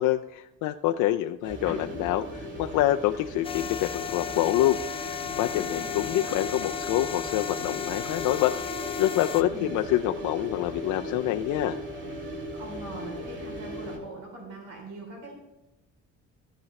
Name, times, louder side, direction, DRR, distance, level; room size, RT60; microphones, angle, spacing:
voice 1, 0.0-4.8 5.4-11.8, left 14 dB, 90° left, 6 dB, 0.5 m, -26 dB
sound 1, 1.4-14.0, equal, 40° right, 2.0 m, -37 dB
sound 2, 3.4-9.4, left 8 dB, 20° left, 0.4 m, -35 dB
voice 2, 5.5-6.4 9.4-9.8 12.5-15.3, right 2 dB, 70° right, 0 dB, 3.6 m, -42 dB
13.5 x 7.3 x 3.2 m, 0.97 s
cardioid pair, 165°, 30 cm